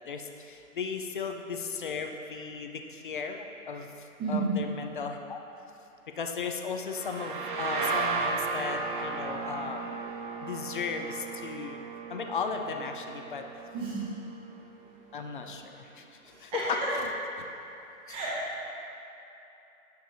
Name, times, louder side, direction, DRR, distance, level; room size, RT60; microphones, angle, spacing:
voice 1, 0.1-5.4 6.2-10.0 10.4-11.8 12.1-13.4 15.1-16.6 16.9-17.1 18.1-18.2, left 5 dB, 40° left, 4 dB, 0.4 m, -36 dB
voice 2, 4.2-4.6 13.7-14.4 14.9-15.0 16.2-16.9 18.1-18.6, right 3 dB, 10° right, -7 dB, 0.9 m, -33 dB
sound 1, 6.9-14.5, right 4 dB, 35° right, 0.4 m, -35 dB
10.0 x 6.7 x 2.6 m, 2.9 s
hypercardioid pair, 140°, 44 cm